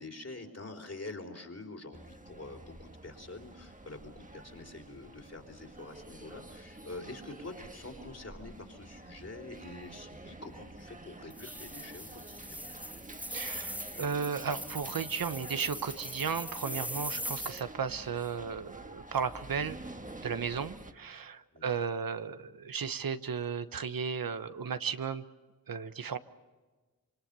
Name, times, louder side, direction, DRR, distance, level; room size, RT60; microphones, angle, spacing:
voice 1, 0.0-12.6 21.5-21.7, left 2 dB, 45° left, 4 dB, 4.0 m, -46 dB
sound 1, 1.9-20.9, right 2 dB, 25° right, 1.5 m, -49 dB
sound 2, 11.3-17.6, equal, 5° right, 2.4 m, -41 dB
voice 2, 13.3-19.8 20.2-25.2 25.7-26.2, right 6 dB, 80° right, 11 dB, 1.1 m, -35 dB
26.5 x 23.5 x 6.9 m, 1.3 s
cardioid pair, 55°, 34 cm